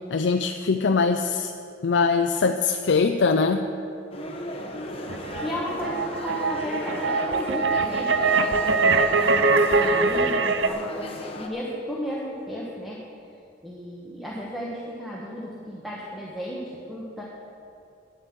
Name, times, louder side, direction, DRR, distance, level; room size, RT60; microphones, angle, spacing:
voice 1, 0.1-1.5 1.8-3.6, left 4 dB, 70° left, 6 dB, 0.4 m, -22 dB
sound 1, 4.1-11.5, left 1 dB, 30° left, 0.9 m, -35 dB
sound 2, 5.1-10.7, right 3 dB, 75° right, 0.6 m, -22 dB
voice 2, 5.4-8.1 8.4-13.0 13.6-17.2, equal, ahead, -5 dB, 1.2 m, -34 dB
9.6 x 9.5 x 7.4 m, 2.6 s
head